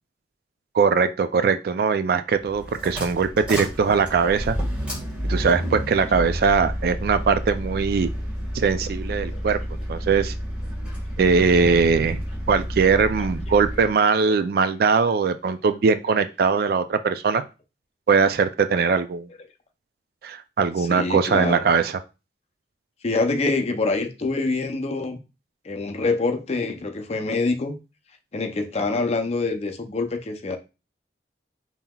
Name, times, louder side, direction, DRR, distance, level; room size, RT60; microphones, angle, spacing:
voice 1, 0.7-4.6 5.2-8.1 8.5-9.6 9.9-10.3 11.2-12.2 12.5-17.4 18.1-19.3 20.2-22.0, right 5 dB, 60° right, 0.3 m, -21 dB
sound 1, 2.4-13.9, equal, 5° right, 1.5 m, -30 dB
voice 2, 20.8-21.6 23.0-25.2 25.6-27.8 28.3-30.6, left 3 dB, 35° left, 0.5 m, -25 dB
5.5 x 2.8 x 2.3 m
head